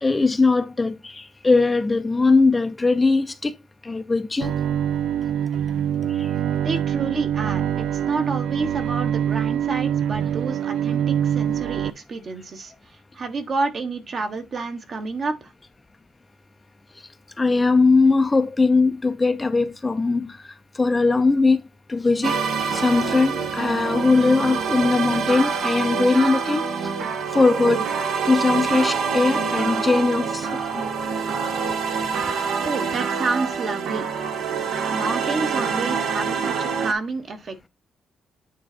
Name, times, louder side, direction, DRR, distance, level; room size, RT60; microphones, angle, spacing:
voice 1, 0.0-3.5 3.8-4.5 6.2-6.3 17.4-20.5 20.7-21.6 21.9-22.4 22.7-26.7 27.3-27.8 28.3-30.8, left 3 dB, 15° left, 0.5 m, -20 dB
Bowed string instrument, 4.4-11.9, right 9 dB, 90° right, 0.4 m, -24 dB
voice 2, 6.6-15.5 32.6-34.1 34.9-37.7, right 3 dB, 40° right, 1.2 m, -29 dB
sound 1, 22.2-36.9, right 5 dB, 70° right, 1.3 m, -26 dB
8.9 x 3.9 x 4.2 m
cardioid pair, 155°, 0 cm